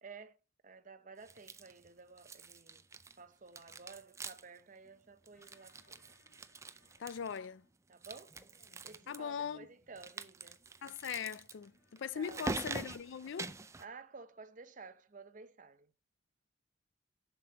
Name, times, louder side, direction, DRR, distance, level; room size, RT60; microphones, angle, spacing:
voice 1, 0.0-0.4 0.6-2.8 3.2-6.0 7.9-8.3 8.8-10.6 12.1-12.4 13.8-15.9, right 4 dB, 40° right, 0.7 m, -53 dB
sound 1, 1.2-1.9 2.2-3.2 3.5-4.6 4.9-5.0 5.2-7.4 7.9-9.2 10.0-13.8, right 3 dB, 15° right, 0.4 m, -45 dB
sound 2, 5.3-8.0 8.3-10.1 10.9-12.6, left 2 dB, 50° left, 2.5 m, -71 dB
voice 2, 7.0-7.6 9.1-9.7 10.8-13.5, left 7 dB, 70° left, 0.4 m, -40 dB
7.5 x 6.0 x 5.1 m
head